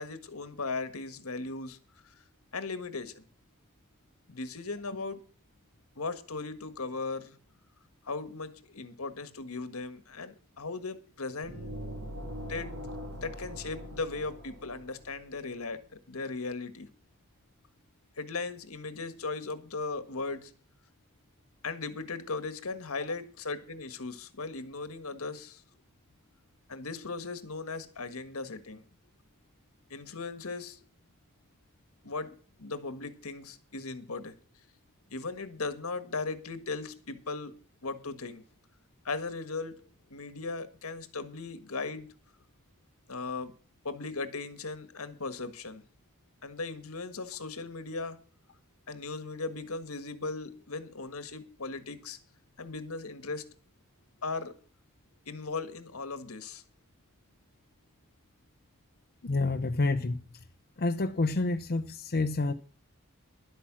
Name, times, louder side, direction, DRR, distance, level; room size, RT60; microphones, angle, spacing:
voice 1, 0.0-1.8 2.0-2.1 2.5-3.3 4.3-5.2 5.9-7.3 8.1-11.7 12.5-12.7 13.1-16.9 18.2-20.5 21.6-25.6 26.7-28.8 29.9-30.8 32.0-34.3 35.1-37.5 37.8-38.4 39.0-39.7 40.1-42.1 43.1-43.5 43.8-45.8 46.4-48.2 48.9-52.2 52.6-53.4 54.2-54.5 55.3-56.6, left 3 dB, 80° left, 1.6 m, -37 dB
sound 1, 11.4-15.2, equal, 80° right, 3.4 m, -42 dB
voice 2, 59.2-60.2 60.8-62.5, left 3 dB, 45° left, 0.7 m, -28 dB
11.5 x 8.5 x 6.1 m
head